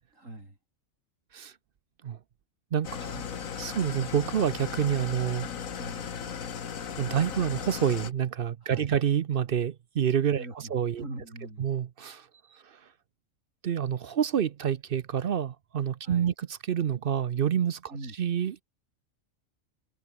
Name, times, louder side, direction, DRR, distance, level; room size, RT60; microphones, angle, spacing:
voice 1, 0.1-0.6 5.8-6.2 8.6-8.9 10.3-11.7 16.0-16.3 17.9-18.1, right 2 dB, 75° right, 6.8 m, -42 dB
voice 2, 2.7-3.2 3.6-5.5 7.0-11.0 11.6-12.3 12.5-12.8 13.6-16.3 16.6-17.9 18.2-18.6, right 9 dB, 55° right, 0.7 m, -28 dB
Engine starting / Idling, 2.8-8.1, left 7 dB, 85° left, 1.8 m, -37 dB
omnidirectional pair, 1.4 m